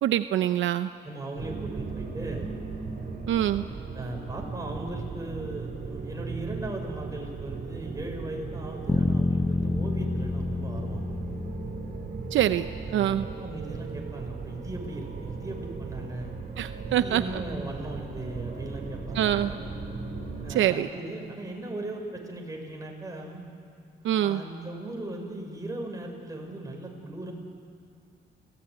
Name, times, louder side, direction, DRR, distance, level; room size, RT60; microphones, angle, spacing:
voice 1, 0.0-0.9 3.3-3.6 12.3-12.7 12.9-13.3 16.6-17.4 19.1-19.5 20.5-20.9 24.0-24.4, right 11 dB, 75° right, 10 dB, 0.7 m, -25 dB
voice 2, 1.0-2.5 3.9-11.2 12.9-13.1 13.4-16.4 16.8-19.6 20.4-23.4 24.2-27.3, right 2 dB, 15° right, 1 dB, 6.2 m, -38 dB
sound 1, 1.4-20.6, right 4 dB, 50° right, 5.8 m, -37 dB
sound 2, 8.9-13.0, left 3 dB, 15° left, 0.5 m, -29 dB
29.5 x 16.5 x 9.9 m, 2.4 s
cardioid pair, 90°, 20 cm